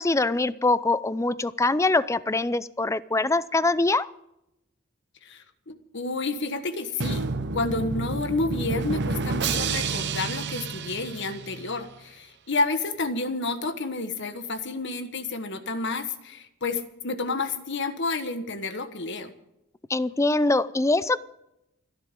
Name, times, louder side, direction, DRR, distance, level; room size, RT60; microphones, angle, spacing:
voice 1, 0.0-4.1 19.9-21.2, left 2 dB, 15° left, 17 dB, 0.5 m, -23 dB
voice 2, 5.2-7.3 7.5-19.3, left 3 dB, 60° left, 9 dB, 1.4 m, -30 dB
Drum, 7.0-11.9, right 4 dB, 55° right, 0.9 m, -29 dB
29.5 x 11.0 x 3.8 m, 0.84 s
head